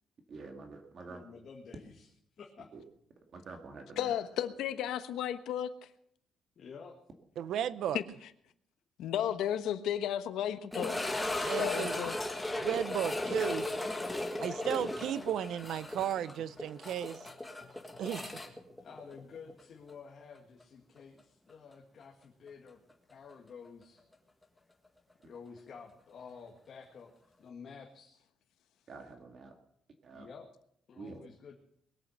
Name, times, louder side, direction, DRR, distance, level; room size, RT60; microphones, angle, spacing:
voice 1, 0.3-1.2 2.7-2.8 3.3-4.2 28.9-29.6 30.0-30.3 31.0-31.2, right 3 dB, 40° right, 4 dB, 2.0 m, -47 dB
voice 2, 1.1-2.1 2.4-2.7 6.6-7.0 18.8-22.8 23.1-24.0 25.2-27.1 27.4-28.2 30.1-30.5 30.9-31.5, left 5 dB, 40° left, 1 dB, 2.0 m, -50 dB
voice 3, 4.0-5.7 7.9-8.0 9.0-11.0 11.6-12.1, left 10 dB, 85° left, 10 dB, 1.2 m, -33 dB
voice 4, 7.4-8.0 11.4-12.1 12.5-13.6 14.4-17.2 18.0-18.3, right 10 dB, 70° right, 16 dB, 0.7 m, -34 dB
sound 1, 10.7-19.6 19.9-20.0 20.6-20.7 23.3-23.4, left 1 dB, 5° left, 1.7 m, -36 dB
21.5 x 8.7 x 6.6 m, 0.70 s
cardioid pair, 155°, 0 cm